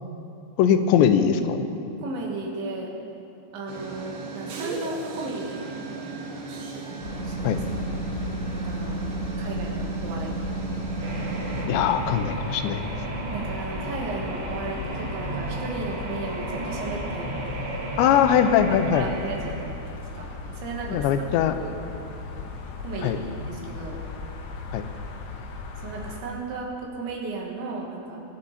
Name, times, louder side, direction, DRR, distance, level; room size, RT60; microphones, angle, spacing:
voice 1, 0.6-1.7 7.4-7.6 11.7-12.9 18.0-19.1 20.9-21.5 23.0-23.2 24.7-24.8, left 8 dB, 85° left, 8 dB, 3.0 m, -21 dB
voice 2, 2.0-2.9 3.5-5.7 7.2-7.6 8.5-9.0 9.4-10.4 13.3-17.3 18.5-19.8 20.1-21.3 21.6-21.7 22.8-24.0 25.8-28.2, right 3 dB, 85° right, -1 dB, 4.3 m, -35 dB
sound 1, 3.7-11.7, right 3 dB, 70° right, 3.2 m, -33 dB
sound 2, 7.0-26.2, left 4 dB, 70° left, 3.1 m, -37 dB
sound 3, 11.0-19.7, right 2 dB, 55° right, 1.6 m, -34 dB
23.5 x 10.0 x 4.2 m, 2.7 s
omnidirectional pair, 5.1 m